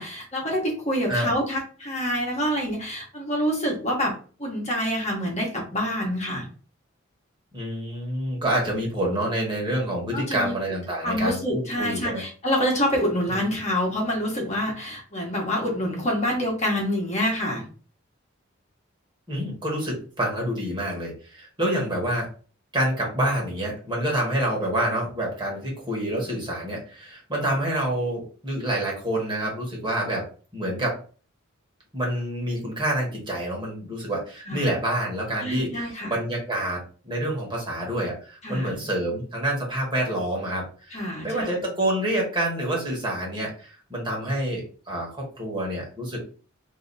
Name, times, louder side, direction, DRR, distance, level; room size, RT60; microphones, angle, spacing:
voice 1, 0.0-4.1 4.4-6.5 10.1-10.5 11.0-17.7 34.5-34.7 35.4-36.2 38.4-38.8 40.9-41.5, equal, 35° left, -2 dB, 1.2 m, -26 dB
voice 2, 7.5-12.2 13.3-13.4 19.3-22.3 22.7-30.3 30.5-31.0 31.9-46.2, right 1 dB, 25° right, -3 dB, 1.5 m, -27 dB
2.8 x 2.8 x 4.0 m, 0.39 s
head